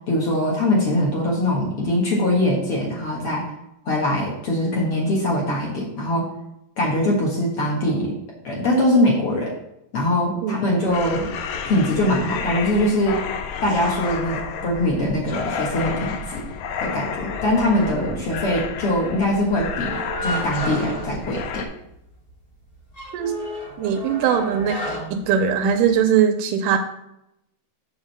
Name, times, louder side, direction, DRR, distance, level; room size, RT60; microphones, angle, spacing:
voice 1, 0.1-3.5 3.9-6.3 6.8-8.2 8.4-9.5 9.9-11.3 11.7-13.2 13.6-16.4 16.8-21.7, left 1 dB, 50° left, -3 dB, 2.0 m, -22 dB
sound 1, 10.9-21.7, left 6 dB, 85° left, 2.5 m, -31 dB
sound 2, 19.9-22.0 22.3-22.4 22.7-26.0, equal, 30° left, 2.1 m, -32 dB
voice 2, 23.8-24.8 25.1-26.8, right 8 dB, 80° right, 6 dB, 2.1 m, -20 dB
7.3 x 3.8 x 6.6 m, 0.81 s
omnidirectional pair, 3.9 m